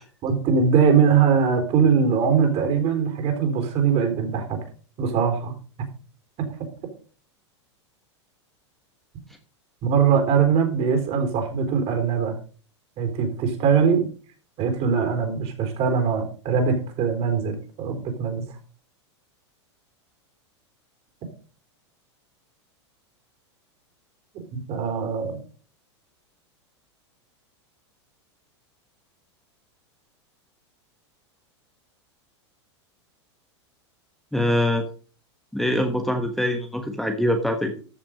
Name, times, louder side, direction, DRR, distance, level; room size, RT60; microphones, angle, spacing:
voice 1, 0.2-4.6 5.0-5.5 6.4-6.5 9.8-12.3 13.0-14.1 14.6-18.4 24.5-25.4, right 6 dB, 45° right, 7 dB, 4.0 m, -21 dB
voice 2, 34.3-34.9 35.5-37.8, left 1 dB, ahead, 5 dB, 1.3 m, -23 dB
14.0 x 6.0 x 5.2 m, 0.39 s
hypercardioid pair, 100°, 15 cm